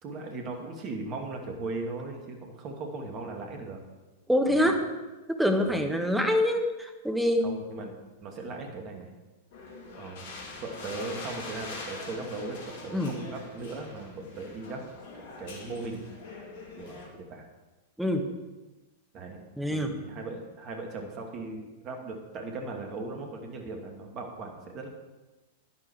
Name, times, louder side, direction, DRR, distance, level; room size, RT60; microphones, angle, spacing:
voice 1, 0.0-3.8 4.4-4.7 5.6-5.8 7.4-7.9 8.2-9.1 10.0-10.4 10.6-14.9 15.1-16.1 16.8-17.4 19.1-19.4 19.7-24.9, right 3 dB, 35° right, 2 dB, 2.5 m, -38 dB
voice 2, 4.3-4.8 5.3-7.5 12.9-13.1 18.0-18.3 19.6-20.0, left 1 dB, 5° right, 4 dB, 1.5 m, -25 dB
sound 1, 9.5-17.1, left 3 dB, 55° left, 2.4 m, -43 dB
11.5 x 10.5 x 4.8 m, 1.2 s
figure-of-eight pair, 95°, 0 cm